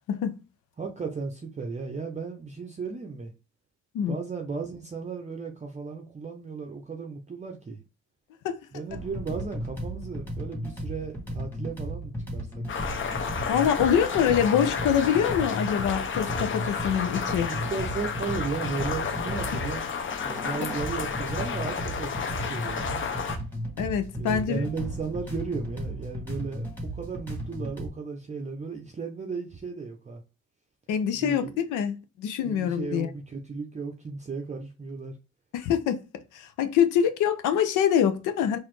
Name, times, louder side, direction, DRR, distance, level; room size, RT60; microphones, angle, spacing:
voice 1, 0.8-3.3 4.1-7.8 8.7-12.6 17.5-19.9 20.2-23.0 24.2-30.2 31.1-31.5 32.4-35.2, right 4 dB, 25° right, 0.6 m, -35 dB
sound 1, 8.9-27.9, right 1 dB, 5° left, 1.4 m, -35 dB
sound 2, 12.7-23.4, left 6 dB, 40° left, 0.6 m, -32 dB
voice 2, 13.5-17.5 23.8-24.7 30.9-33.1 35.5-36.0 36.3-38.6, left 8 dB, 85° left, 0.6 m, -25 dB
4.0 x 2.5 x 3.1 m
cardioid pair, 90°, 30 cm